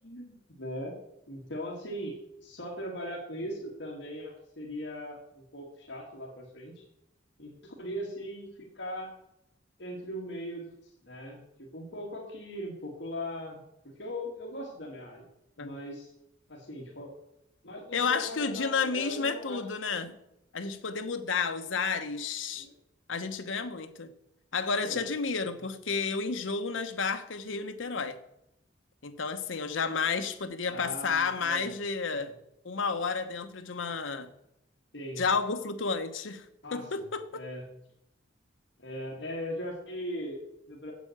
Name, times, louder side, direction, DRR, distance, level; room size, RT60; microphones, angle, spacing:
voice 1, 0.0-1.0 1.3-6.8 7.4-9.2 9.8-13.6 13.8-15.2 15.6-16.1 16.5-17.1 17.6-19.7 22.5-22.8 24.8-25.0 30.7-31.7 32.1-32.3 34.9-35.2 36.6-36.9 37.3-37.6 38.8-40.9, equal, 65° left, 2.0 m, -39 dB
voice 2, 17.9-20.2 20.5-22.7 23.1-24.1 24.5-28.2 29.0-32.3 32.6-34.3 35.2-36.4 36.7-37.4, left 5 dB, 90° left, 1.0 m, -31 dB
8.2 x 7.7 x 7.9 m
head